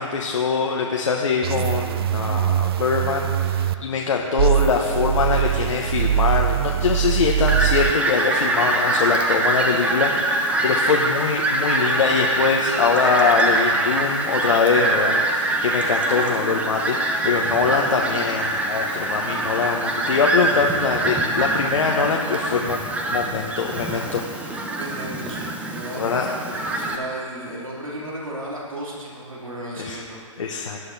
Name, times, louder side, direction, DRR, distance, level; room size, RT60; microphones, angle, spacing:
voice 1, 0.0-24.6 26.0-26.3 29.8-30.0 30.4-30.8, left 5 dB, 70° left, 0 dB, 1.0 m, -23 dB
sound 1, 1.4-3.7 4.4-7.9, right 10 dB, 50° right, 0.4 m, -22 dB
Fowl, 7.5-27.0, right 2 dB, 10° right, 0.8 m, -24 dB
voice 2, 24.4-30.6, right 1 dB, 85° right, -5 dB, 2.8 m, -35 dB
18.0 x 9.5 x 2.7 m, 2.2 s
figure-of-eight pair, 125°, 17 cm